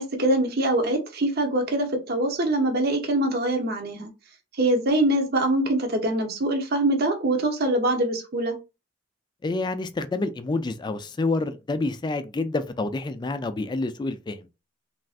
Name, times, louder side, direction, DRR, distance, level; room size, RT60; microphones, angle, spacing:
voice 1, 0.0-4.1 4.6-8.6, right 1 dB, 55° right, 0.8 m, -24 dB
voice 2, 9.4-14.4, left 3 dB, 25° left, 0.3 m, -28 dB
3.3 x 2.5 x 2.4 m
head